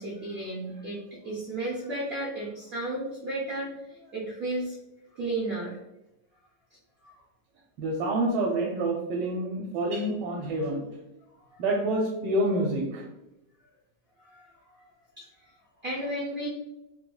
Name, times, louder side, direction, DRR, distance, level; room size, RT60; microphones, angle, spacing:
voice 1, 0.0-3.7 4.1-4.8 5.1-5.8 7.0-7.1 14.2-14.5 15.2-15.3 15.8-16.5, right 1 dB, 55° right, -5 dB, 0.7 m, -33 dB
voice 2, 7.8-10.8 11.6-13.1, right 1 dB, 85° right, -2 dB, 1.2 m, -27 dB
3.2 x 3.0 x 2.2 m, 0.91 s
omnidirectional pair, 1.8 m